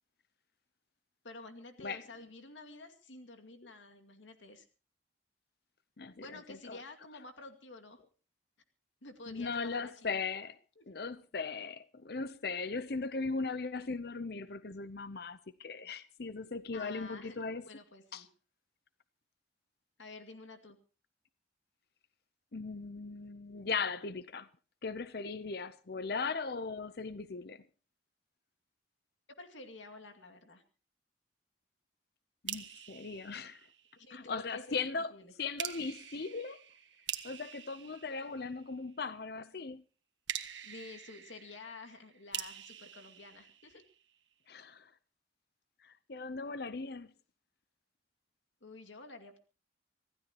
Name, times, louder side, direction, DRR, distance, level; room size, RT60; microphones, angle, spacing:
voice 1, 1.2-4.7 6.2-8.0 9.0-10.1 10.8-10.9 16.7-17.4 17.7-18.3 20.0-20.8 29.4-30.6 34.0-34.8 35.1-35.3 40.6-43.8 48.6-49.4, left 3 dB, 90° left, 2.4 m, -50 dB
voice 2, 6.0-6.8 9.3-10.6 10.9-17.6 18.1-18.3 22.5-24.5 24.8-27.6 32.4-33.7 34.1-35.1 35.4-36.6 37.2-39.8 44.5-44.9 45.8-47.1, left 4 dB, 55° left, 0.7 m, -38 dB
sound 1, 32.5-34.2 35.6-38.9 40.3-44.2, right 10 dB, 80° right, 1.6 m, -45 dB
25.5 x 15.5 x 3.0 m
head